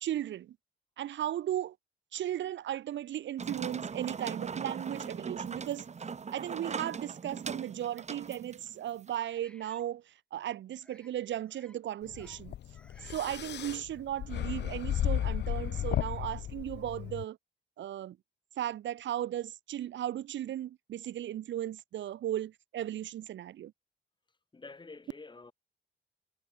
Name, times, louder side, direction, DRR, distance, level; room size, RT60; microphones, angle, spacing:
voice 1, 0.0-0.6 1.0-1.8 2.1-5.9 6.3-12.5 13.0-17.4 17.8-18.2 18.6-23.7, right 12 dB, 70° right, 1.2 m, -36 dB
sound 1, 3.4-9.1, right 5 dB, 35° right, 1.6 m, -39 dB
sound 2, 9.2-9.8 10.8-11.1 11.4-11.8 12.0-12.4 12.7-13.3, left 1 dB, 5° left, 6.0 m, -60 dB
sound 3, 12.1-17.2, left 11 dB, 60° left, 0.8 m, -34 dB
voice 2, 24.5-25.5, left 3 dB, 25° left, 2.6 m, -48 dB
cardioid pair, 90°, 20 cm